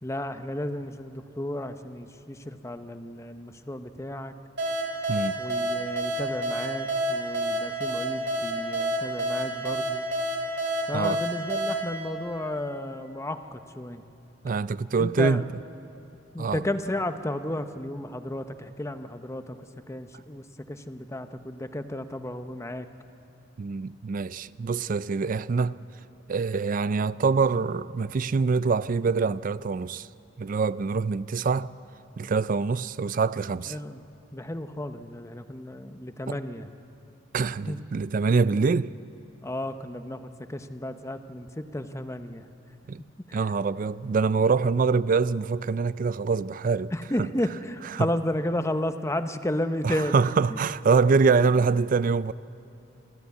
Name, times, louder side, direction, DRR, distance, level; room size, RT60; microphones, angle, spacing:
voice 1, 0.0-4.3 5.4-10.1 10.9-14.0 14.9-15.4 16.3-22.9 33.7-34.0 34.3-36.7 37.7-37.8 39.4-42.4 43.3-43.4 46.9-50.2 50.5-50.6, left 1 dB, 15° left, 0.8 m, -33 dB
sound 1, 4.6-13.0, right 1 dB, 70° right, 3.9 m, -29 dB
voice 2, 14.4-15.4 16.4-16.6 23.6-25.8 26.3-30.1 30.4-31.7 32.2-33.8 36.3-36.4 37.3-38.9 42.9-43.0 43.3-46.9 47.2-47.3 47.9-48.1 49.8-52.3, right 4 dB, 45° right, 0.4 m, -25 dB
26.5 x 14.5 x 8.3 m
head